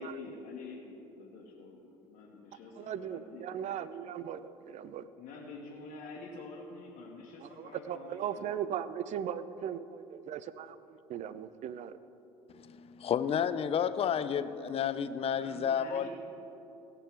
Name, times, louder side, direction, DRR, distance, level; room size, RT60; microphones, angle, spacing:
voice 1, 0.0-3.9 5.2-8.5 15.3-16.1, left 3 dB, 60° left, -4 dB, 1.4 m, -47 dB
voice 2, 2.8-5.1 7.4-12.0, right 9 dB, 50° right, 14 dB, 0.6 m, -38 dB
voice 3, 12.5-16.1, left 8 dB, 40° left, 13 dB, 0.6 m, -31 dB
16.5 x 6.3 x 4.6 m, 2.9 s
hypercardioid pair, 60°, 16 cm